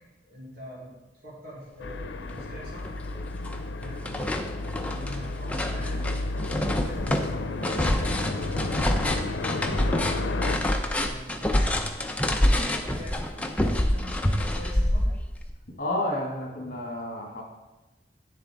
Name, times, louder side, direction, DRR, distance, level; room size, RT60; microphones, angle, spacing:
voice 1, 0.2-3.0 3.8-4.5 4.9-11.8 12.3-15.1, equal, 55° right, -7 dB, 3.4 m, -44 dB
sound 1, 1.8-10.6, left 2 dB, 90° left, 0.6 m, -32 dB
sound 2, 2.4-2.5 2.8-3.6 3.8-15.5, left 1 dB, 10° left, 0.6 m, -27 dB
voice 2, 15.8-17.4, left 1 dB, 50° left, 0 dB, 2.0 m, -31 dB
9.8 x 7.6 x 3.5 m, 1.1 s
head